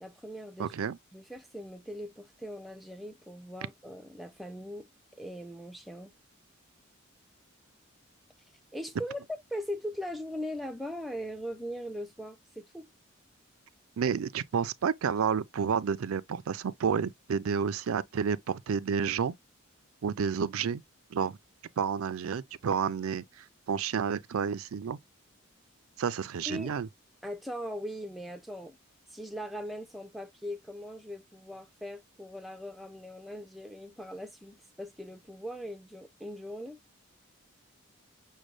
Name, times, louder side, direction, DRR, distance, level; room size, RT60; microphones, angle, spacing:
voice 1, 0.0-0.7 1.1-6.1 8.7-9.2 9.5-12.9 26.5-26.7 27.2-28.8 29.1-36.8, equal, ahead, 0.4 m, -40 dB
voice 2, 0.6-1.0 14.0-19.3 20.0-20.8 21.1-21.4 21.8-25.0 26.0-26.9, right 6 dB, 75° right, 0.4 m, -30 dB
6.3 x 2.2 x 3.1 m
head